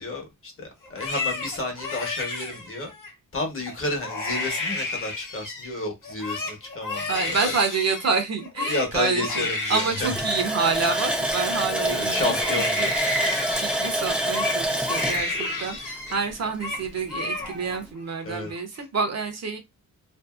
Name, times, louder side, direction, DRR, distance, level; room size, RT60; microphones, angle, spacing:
voice 1, 0.0-2.9 3.3-7.6 8.6-10.1 11.9-12.9 18.2-18.5, left 2 dB, 40° left, 1.0 m, -31 dB
Crying sobbing, 0.8-3.1 3.6-5.7 6.0-11.8 12.2-16.2 16.4-16.8 17.1-17.8 18.2-18.8, left 2 dB, 65° left, 0.9 m, -31 dB
voice 2, 7.1-12.3 12.8-12.9 13.6-19.6, right 5 dB, 50° right, 0.7 m, -28 dB
Water tap faucet, 10.0-16.5 16.8-16.9 17.4-17.6, right 1 dB, 5° right, 0.4 m, -27 dB
2.7 x 2.5 x 2.4 m
wide cardioid pair, 125°, 34 cm